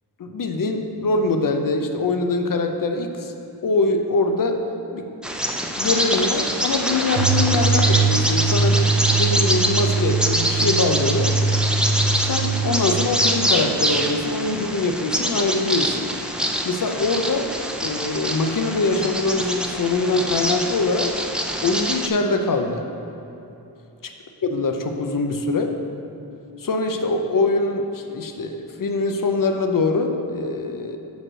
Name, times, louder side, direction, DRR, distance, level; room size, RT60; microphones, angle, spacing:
voice 1, 0.2-3.3 3.6-4.6 4.9-5.1 5.6-11.3 12.2-16.1 16.6-17.5 17.8-21.1 21.6-22.8 24.0-24.1 24.4-25.8 26.6-31.0, left 3 dB, 55° left, 5 dB, 0.6 m, -23 dB
Bird vocalization bird call bird song, 5.2-22.1, equal, ahead, 0.4 m, -25 dB
sound 1, 7.1-13.1, right 4 dB, 85° right, 0.7 m, -22 dB
6.0 x 5.2 x 6.3 m, 3.0 s
wide cardioid pair, 120°, 41 cm